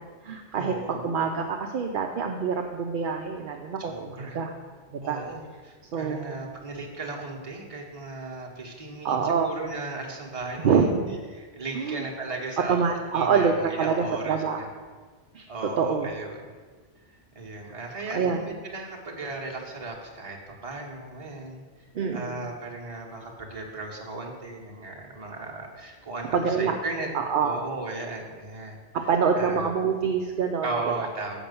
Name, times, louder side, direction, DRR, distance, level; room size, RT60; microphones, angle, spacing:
voice 1, 0.0-4.5 4.9-5.2 5.9-6.4 9.0-9.5 10.6-11.2 11.7-12.0 12.7-14.6 15.3-16.1 18.1-18.4 21.9-22.5 26.3-26.7 27.1-27.6 28.9-30.7, right 6 dB, 55° right, 3 dB, 0.7 m, -26 dB
voice 2, 0.5-1.0 3.6-4.4 5.0-10.9 11.3-12.8 13.1-14.7 15.5-16.5 17.1-27.1 27.4-28.8 29.4-29.7 30.6-31.4, right 2 dB, 30° right, -2 dB, 1.4 m, -36 dB
7.4 x 5.3 x 6.8 m, 1.5 s
omnidirectional pair, 1.2 m